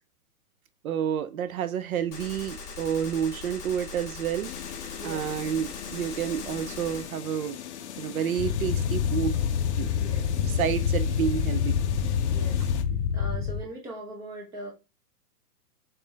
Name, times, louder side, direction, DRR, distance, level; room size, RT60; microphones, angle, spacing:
voice 1, 0.8-4.5 4.8-7.6 8.0-9.4 9.8-9.9 10.4-11.8, right 9 dB, 65° right, 0.6 m, -29 dB
Gunshot gunfire, 2.1-7.1, left 4 dB, 20° left, 1.6 m, -41 dB
sound 1, 4.4-12.8, left 10 dB, 45° left, 0.6 m, -40 dB
voice 2, 5.0-5.4 9.9-10.5 12.3-12.7 13.1-14.7, right 2 dB, 5° right, 0.6 m, -40 dB
sound 2, 8.4-13.6, left 8 dB, 80° left, 0.7 m, -26 dB
4.3 x 3.8 x 3.1 m
hypercardioid pair, 145°, 47 cm